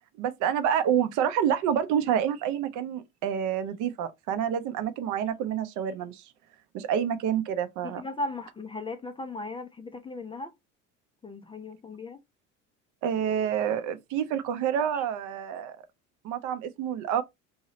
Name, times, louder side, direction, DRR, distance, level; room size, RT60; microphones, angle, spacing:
voice 1, 0.2-6.2 6.7-8.0 13.0-15.8 16.2-17.2, right 9 dB, 55° right, 0.6 m, -28 dB
voice 2, 7.8-10.5 11.2-12.2, left 2 dB, 15° left, 0.4 m, -37 dB
2.8 x 2.7 x 3.0 m
hypercardioid pair, 70°, 37 cm